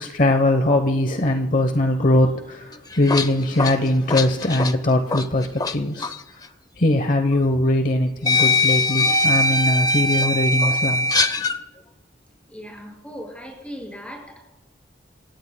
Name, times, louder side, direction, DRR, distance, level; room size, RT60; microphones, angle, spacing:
voice 1, 0.0-5.5 5.7-6.5 6.8-11.1 11.4-11.5, left 1 dB, 50° left, 6 dB, 1.0 m, -21 dB
sound 1, 2.7-5.7 6.0-6.2 7.3-7.4 8.2-11.6, left 2 dB, 25° left, 0.6 m, -21 dB
voice 2, 12.5-14.5, equal, 5° left, -1 dB, 5.6 m, -38 dB
27.5 x 17.0 x 2.3 m, 1.0 s
head